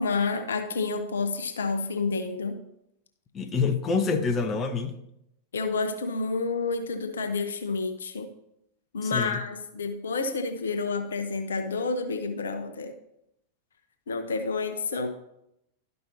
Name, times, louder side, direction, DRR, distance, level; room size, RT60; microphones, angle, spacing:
voice 1, 0.0-2.6 5.5-8.3 8.9-12.9 14.1-15.1, left 4 dB, 70° left, 7 dB, 0.8 m, -29 dB
voice 2, 3.3-5.0 9.0-9.4, left 5 dB, 25° left, 6 dB, 0.7 m, -26 dB
12.0 x 5.3 x 2.9 m, 0.80 s
figure-of-eight pair, 90°, 0 cm